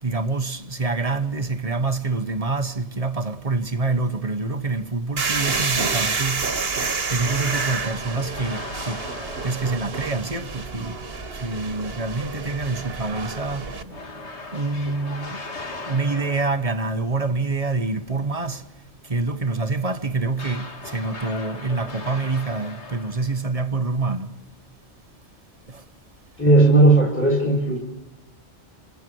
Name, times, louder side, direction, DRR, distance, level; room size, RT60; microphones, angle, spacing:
voice 1, 0.0-6.5 7.1-9.1 9.4-11.0 11.3-24.3 25.7-25.8, right 3 dB, 35° right, 1.1 m, -26 dB
sound 1, 5.2-13.8, right 4 dB, 60° right, 1.7 m, -29 dB
sound 2, 7.2-10.2 13.9-16.8 20.3-23.4, left 3 dB, 70° left, 2.3 m, -38 dB
voice 2, 26.4-27.8, right 2 dB, 10° left, 2.8 m, -16 dB
27.0 x 27.0 x 6.2 m
omnidirectional pair, 1.2 m